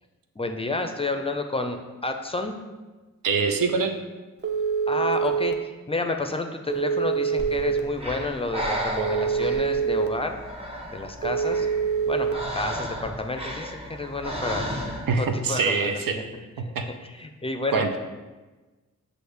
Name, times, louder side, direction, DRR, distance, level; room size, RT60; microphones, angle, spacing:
voice 1, 0.4-2.5 4.9-10.4 10.9-11.7 12.1-14.7 15.1-16.2 16.6-16.8 17.0-17.8, left 2 dB, 20° left, 5 dB, 0.5 m, -30 dB
voice 2, 3.2-4.0 15.1-16.2 16.6-16.9 17.7-18.0, right 4 dB, 85° right, 6 dB, 0.5 m, -24 dB
Telephone, 4.4-5.5 6.7-7.8 9.0-10.1 11.2-12.3, right 6 dB, 35° right, 0.5 m, -25 dB
Breathing, 7.4-15.3, equal, 15° right, 0.9 m, -34 dB
6.2 x 2.6 x 3.3 m, 1.2 s
cardioid pair, 45°, 32 cm